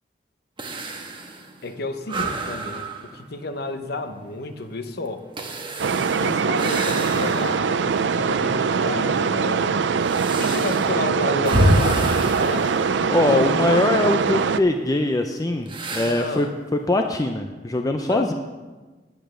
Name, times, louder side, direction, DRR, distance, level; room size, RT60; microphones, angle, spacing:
sound 1, 0.6-7.8 8.2-8.3 9.1-13.7 15.7-16.5, right 1 dB, 30° right, 1.2 m, -28 dB
voice 1, 1.6-5.2 6.2-9.8 10.2-12.8 16.2-16.5 18.0-18.3, left 3 dB, 65° left, 7 dB, 0.9 m, -31 dB
sound 2, 5.8-14.6, right 5 dB, 80° right, 0.5 m, -22 dB
voice 2, 13.1-18.3, left 2 dB, 20° left, 5 dB, 0.5 m, -22 dB
10.0 x 9.0 x 6.3 m, 1.3 s
head